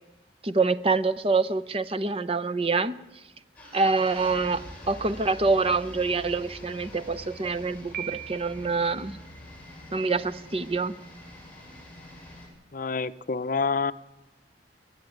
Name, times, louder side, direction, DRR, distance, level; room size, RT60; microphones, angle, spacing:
voice 1, 0.4-2.9 3.7-9.2 9.9-10.9, right 3 dB, 30° right, 13 dB, 0.8 m, -26 dB
sound 1, 3.5-12.5, left 1 dB, 10° left, 8.0 m, -45 dB
Piano, 7.9-8.9, right 12 dB, 55° right, 1.5 m, -38 dB
voice 2, 12.7-13.9, left 4 dB, 50° left, 14 dB, 0.7 m, -27 dB
29.0 x 11.0 x 9.4 m, 1.1 s
head